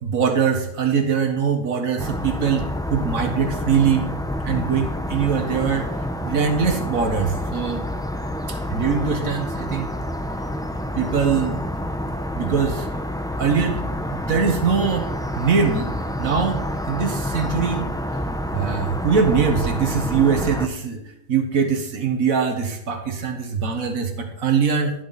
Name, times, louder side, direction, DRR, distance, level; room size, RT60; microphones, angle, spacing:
voice 1, 0.0-4.1 4.5-5.9 6.2-7.9 8.5-9.9 11.0-11.6 12.4-12.9 13.4-13.8 14.1-15.1 15.4-15.9 16.2-17.9 18.5-21.0 21.3-24.9, right 6 dB, 85° right, 5 dB, 1.8 m, -22 dB
sound 1, 2.0-20.7, left 1 dB, 5° left, 0.6 m, -28 dB
13.0 x 11.5 x 4.2 m, 0.78 s
omnidirectional pair, 1.4 m